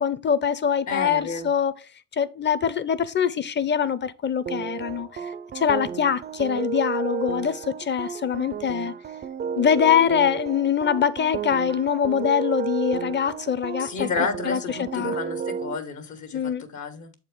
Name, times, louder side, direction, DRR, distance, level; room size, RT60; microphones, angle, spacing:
voice 1, 0.0-1.7 2.1-5.1 5.5-8.9 9.6-14.1 14.4-15.2 16.3-16.6, left 8 dB, 35° left, 0.7 m, -23 dB
voice 2, 0.9-1.5 13.8-17.1, left 4 dB, 70° left, 1.6 m, -31 dB
sound 1, 4.5-15.8, right 6 dB, 35° right, 0.4 m, -32 dB
7.4 x 4.4 x 3.6 m
cardioid pair, 90°, 30 cm